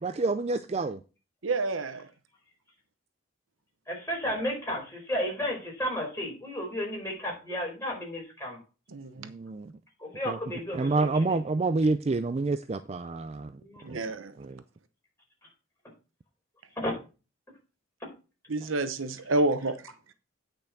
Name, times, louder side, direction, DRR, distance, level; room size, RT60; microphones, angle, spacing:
voice 1, 0.0-1.0 9.2-9.7 10.3-10.4 10.7-13.5 13.9-14.0 14.4-14.6, right 3 dB, 30° right, 0.4 m, -28 dB
voice 2, 1.4-2.1 8.9-9.3 13.8-14.3 18.5-19.8, right 2 dB, 80° right, 0.9 m, -29 dB
voice 3, 3.9-8.6 10.0-11.4 13.6-14.0 16.8-17.0 18.0-18.1, equal, 15° left, 4.5 m, -33 dB
9.2 x 5.3 x 5.9 m
head